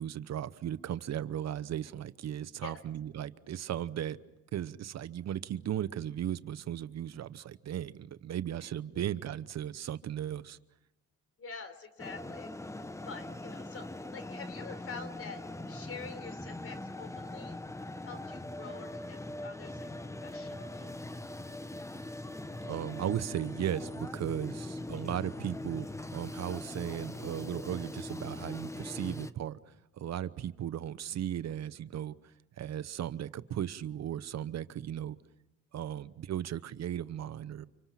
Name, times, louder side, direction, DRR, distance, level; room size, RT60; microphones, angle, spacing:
voice 1, 0.0-4.2 4.5-10.6 22.6-35.2 35.7-37.7, right 10 dB, 60° right, 15 dB, 0.9 m, -36 dB
voice 2, 11.4-12.5 13.0-17.6 18.0-19.9 20.2-20.9, left 5 dB, 50° left, 10 dB, 4.2 m, -46 dB
sound 1, 12.0-29.3, left 1 dB, 10° left, 1.0 m, -41 dB
30.0 x 26.5 x 6.0 m, 0.96 s
cardioid pair, 90°, 30 cm